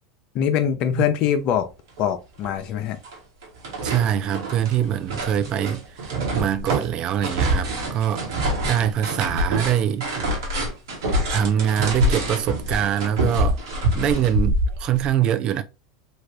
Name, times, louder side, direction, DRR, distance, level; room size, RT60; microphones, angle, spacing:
voice 1, 0.3-1.7 2.0-3.0, left 9 dB, 50° left, 0.6 m, -23 dB
sound 1, 2.0-2.1 2.4-3.2 3.4-15.1, right 1 dB, 75° right, 1.3 m, -26 dB
voice 2, 3.8-10.1 11.3-13.6 13.9-15.6, right 10 dB, 40° right, 0.4 m, -24 dB
3.2 x 2.5 x 3.2 m
hypercardioid pair, 95°, 2 cm